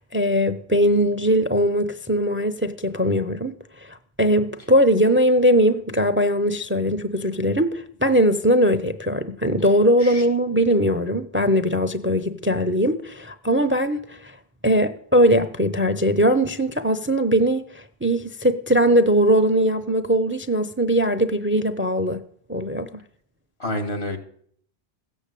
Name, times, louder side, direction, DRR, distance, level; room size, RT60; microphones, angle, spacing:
voice 1, 0.1-14.3 14.6-22.2 22.5-23.0, equal, 15° right, 0.5 m, -20 dB
voice 2, 23.6-24.2, left 1 dB, 80° left, 2.3 m, -28 dB
15.5 x 7.2 x 8.3 m
omnidirectional pair, 1.1 m